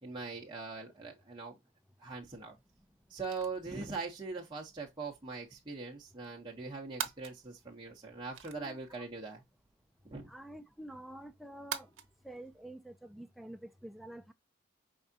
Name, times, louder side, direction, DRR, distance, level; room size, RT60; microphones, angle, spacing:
voice 1, 0.0-1.6 2.0-2.6 3.1-9.4 10.0-10.3, right 4 dB, 20° right, 0.9 m, -41 dB
sound 1, 2.2-12.7, right 8 dB, 80° right, 0.8 m, -49 dB
voice 2, 10.3-11.9 12.2-14.3, right 1 dB, ahead, 0.4 m, -48 dB
5.5 x 3.5 x 2.7 m
head